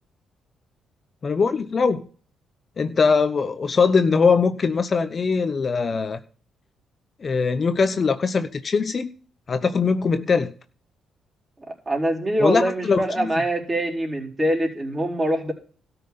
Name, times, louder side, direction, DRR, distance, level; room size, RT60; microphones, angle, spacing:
voice 1, 1.2-2.1 2.8-6.2 7.2-9.1 9.5-10.5 12.4-13.3, left 5 dB, 40° left, 9 dB, 0.9 m, -21 dB
voice 2, 11.9-15.5, right 1 dB, 25° right, 0 dB, 4.5 m, -24 dB
13.0 x 5.9 x 6.8 m, 0.42 s
cardioid pair, 90°, 0 cm